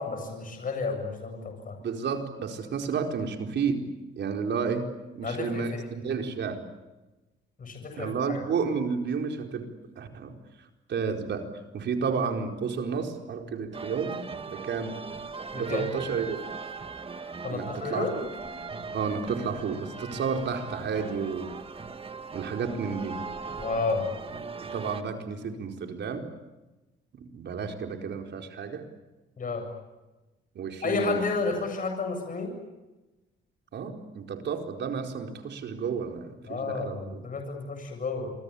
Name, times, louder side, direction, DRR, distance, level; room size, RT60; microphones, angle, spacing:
voice 1, 0.0-1.8 5.2-5.8 7.6-8.4 15.5-15.8 17.4-18.1 23.6-24.0 29.4-29.7 30.8-32.5 36.5-38.3, left 4 dB, 45° left, 4 dB, 7.7 m, -31 dB
voice 2, 1.8-3.8 4.2-4.9 5.1-6.6 8.0-9.7 10.0-10.4 10.9-11.5 11.7-14.2 14.5-14.9 15.5-16.4 17.5-18.3 18.9-21.5 22.3-23.2 24.6-26.3 27.1-28.8 30.5-31.2 33.7-37.2, right 5 dB, 65° right, 4 dB, 4.6 m, -31 dB
sound 1, 13.7-25.0, right 4 dB, 30° right, 2.0 m, -39 dB
27.0 x 25.0 x 8.6 m, 1.1 s
cardioid pair, 90°, 20 cm